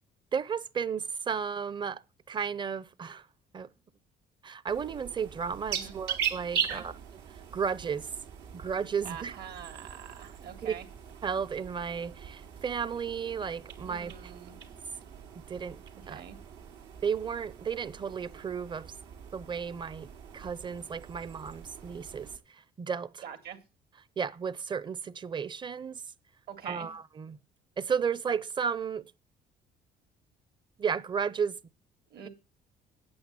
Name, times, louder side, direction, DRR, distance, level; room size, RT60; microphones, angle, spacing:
voice 1, 0.3-2.0 2.3-3.2 3.5-3.7 4.4-6.9 7.5-8.1 8.5-9.3 10.6-10.7 11.2-14.1 15.5-15.8 16.1-16.2 17.0-18.9 19.3-20.1 20.3-22.3 22.8-23.2 24.2-26.0 26.6-27.4 27.8-29.1 30.8-31.6, right 6 dB, 25° right, 0.6 m, -33 dB
sound 1, 4.7-22.4, right 8 dB, 90° right, 2.5 m, -41 dB
voice 2, 9.0-10.9 13.8-14.6 15.9-16.4 23.2-23.6 26.5-26.9 32.1-32.3, right 8 dB, 70° right, 2.4 m, -44 dB
8.9 x 8.7 x 7.5 m
cardioid pair, 110°, 17 cm